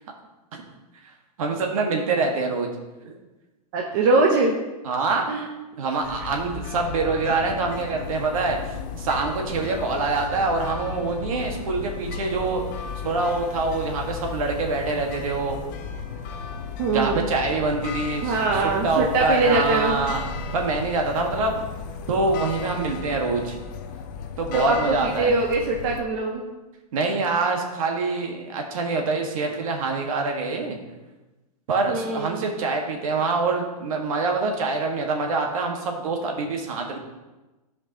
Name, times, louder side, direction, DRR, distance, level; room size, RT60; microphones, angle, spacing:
voice 1, 1.4-2.7 3.0-3.1 4.8-5.3 5.8-12.7 13.0-15.6 16.9-20.2 20.5-21.6 22.1-23.6 24.4-25.3 26.9-30.8 31.7-37.0, right 3 dB, 55° right, 2 dB, 1.5 m, -25 dB
voice 2, 3.7-4.5 5.3-5.4 16.8-17.2 18.2-20.0 24.5-26.4 31.8-32.4, right 3 dB, 30° right, 0 dB, 0.7 m, -22 dB
sound 1, 6.0-26.0, left 5 dB, 30° left, 0.5 m, -34 dB
14.5 x 5.2 x 2.8 m, 1.1 s
hypercardioid pair, 165°, 20 cm